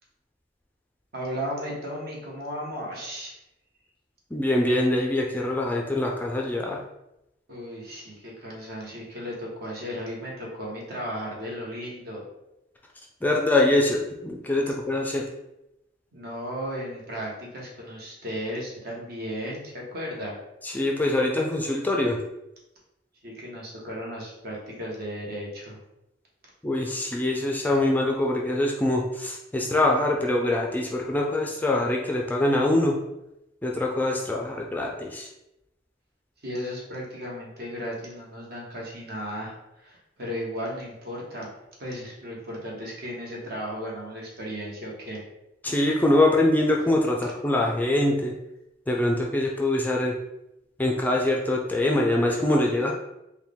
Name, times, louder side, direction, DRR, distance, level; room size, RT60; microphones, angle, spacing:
voice 1, 1.1-3.3 7.5-12.2 16.1-20.3 23.2-25.8 36.4-41.5 41.8-45.2, equal, 55° right, -3 dB, 1.2 m, -35 dB
voice 2, 4.3-6.8 13.2-15.2 20.6-22.2 26.6-33.0 33.6-35.3 45.6-48.3 48.9-50.2 50.8-52.9, left 1 dB, 10° left, -1 dB, 0.4 m, -24 dB
4.4 x 2.3 x 3.5 m, 0.89 s
head